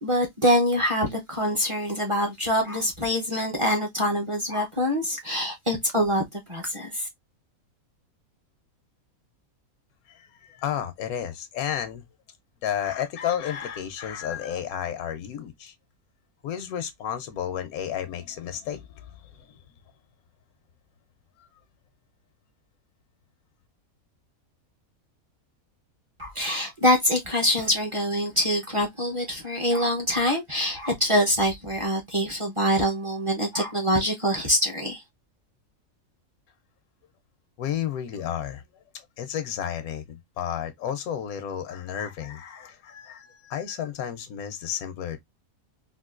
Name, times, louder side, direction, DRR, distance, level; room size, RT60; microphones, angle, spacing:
voice 1, 0.0-7.1 26.2-35.0, equal, 30° right, 0.6 m, -25 dB
voice 2, 10.1-12.0 12.6-15.7 16.4-19.6 21.4-21.5 37.6-38.6 38.9-45.2, left 9 dB, 85° left, 1.1 m, -32 dB
3.7 x 2.5 x 2.3 m
omnidirectional pair, 1.5 m